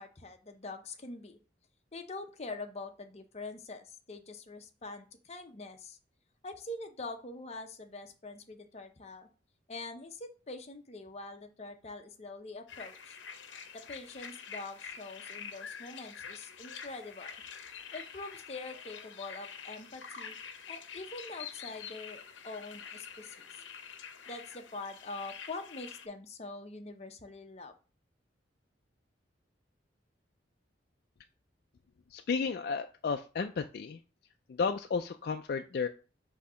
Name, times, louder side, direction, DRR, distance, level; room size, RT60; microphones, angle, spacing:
voice 1, 0.0-1.4 1.9-6.0 6.4-9.3 9.7-13.2 13.7-17.3 17.9-20.4 20.7-23.4 24.3-27.7, left 2 dB, 35° left, 5 dB, 0.7 m, -44 dB
sound 1, 12.7-26.1, left 6 dB, 80° left, 0.7 m, -46 dB
voice 2, 32.1-34.0 34.5-35.9, left 5 dB, 55° left, 6 dB, 0.3 m, -33 dB
6.3 x 2.8 x 5.6 m, 0.35 s
head